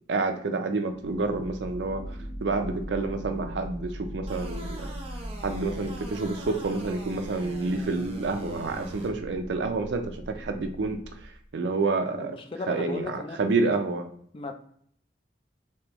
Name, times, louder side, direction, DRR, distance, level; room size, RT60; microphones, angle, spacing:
voice 1, 0.1-4.9 5.4-12.4 12.7-14.1, right 3 dB, 75° right, 7 dB, 0.5 m, -29 dB
sound 1, 0.9-11.5, equal, 80° left, 0.8 m, -40 dB
sound 2, 4.3-9.1, right 1 dB, 35° right, 0.7 m, -42 dB
voice 2, 12.0-13.5 14.3-14.5, left 3 dB, 30° left, 6 dB, 0.4 m, -37 dB
3.4 x 3.3 x 2.9 m, 0.64 s
head